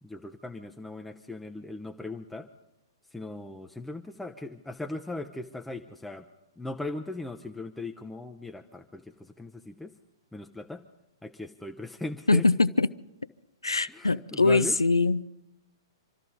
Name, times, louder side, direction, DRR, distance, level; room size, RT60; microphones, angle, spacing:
voice 1, 0.0-2.5 3.1-6.3 6.6-9.9 10.3-10.8 11.2-12.4 13.9-14.8, left 2 dB, 5° left, 5 dB, 0.6 m, -38 dB
voice 2, 12.3-12.9 13.6-15.2, left 3 dB, 80° left, 16 dB, 0.5 m, -22 dB
26.5 x 13.5 x 4.0 m, 0.94 s
figure-of-eight pair, 115°, 2 cm